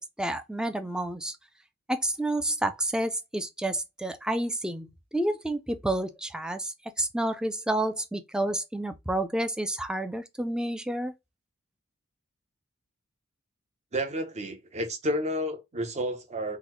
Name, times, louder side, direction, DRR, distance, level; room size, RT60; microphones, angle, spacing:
voice 1, 0.0-1.4 1.9-11.1, right 1 dB, 5° right, 0.3 m, -30 dB
voice 2, 13.9-16.6, equal, 35° right, 0.7 m, -31 dB
3.8 x 2.1 x 3.0 m
head